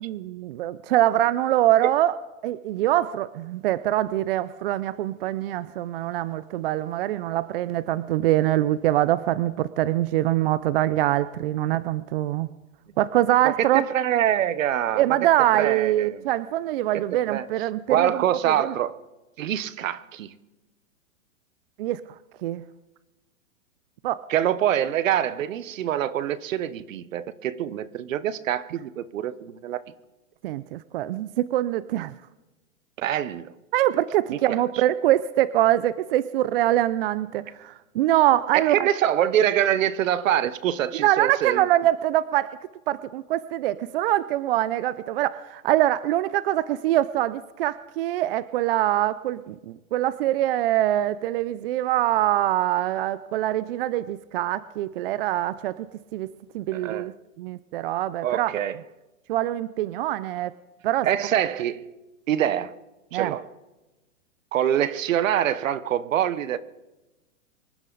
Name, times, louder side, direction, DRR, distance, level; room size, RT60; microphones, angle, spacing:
voice 1, 0.0-2.1 2.4-12.5 13.0-13.8 15.0-18.7 21.8-22.0 22.4-22.6 24.0-24.2 30.4-32.1 33.7-38.9 40.9-42.6 42.9-55.9 56.1-57.1 57.4-58.5 59.3-60.5 60.8-61.1 63.1-63.3, right 14 dB, 45° right, 0.5 m, -24 dB
voice 2, 13.4-15.2 15.5-16.2 16.9-17.5 17.9-19.0 19.4-20.3 24.3-29.8 33.0-33.5 34.3-34.6 38.5-41.7 56.7-57.1 58.2-58.8 61.0-61.8 62.3-62.7 63.1-63.5 64.5-66.6, right 11 dB, 70° right, 1.1 m, -25 dB
25.0 x 11.5 x 4.0 m
hypercardioid pair, 140°, 41 cm